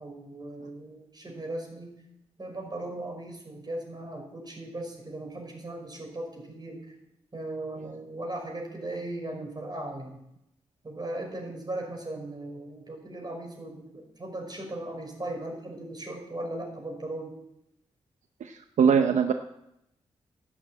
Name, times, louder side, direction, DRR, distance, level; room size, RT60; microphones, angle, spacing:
voice 1, 0.0-2.0 2.4-6.8 7.3-10.2 10.8-17.3, right 1 dB, 35° right, 1 dB, 5.3 m, -38 dB
voice 2, 18.4-19.3, right 6 dB, 75° right, 7 dB, 0.7 m, -22 dB
11.0 x 7.9 x 8.6 m, 0.82 s
cardioid pair, 55°, 12 cm